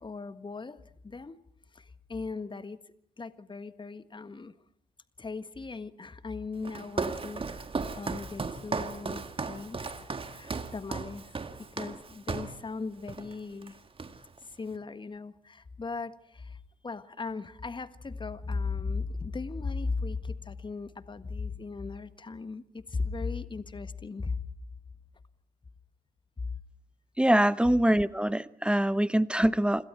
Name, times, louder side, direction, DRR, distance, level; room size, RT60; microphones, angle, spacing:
voice 1, 0.0-1.4 1.7-2.8 3.2-4.5 5.2-7.7 8.0-11.4 11.7-13.7 14.4-24.4 26.4-26.5, left 4 dB, 25° left, 12 dB, 1.5 m, -37 dB
Walk footsteps, 6.6-12.6 13.1-13.3 13.6-14.4, right 4 dB, 25° right, 1.8 m, -36 dB
voice 2, 27.2-29.9, right 1 dB, 5° right, 18 dB, 0.9 m, -24 dB
29.0 x 26.5 x 4.6 m, 0.72 s
figure-of-eight pair, 45°, 20 cm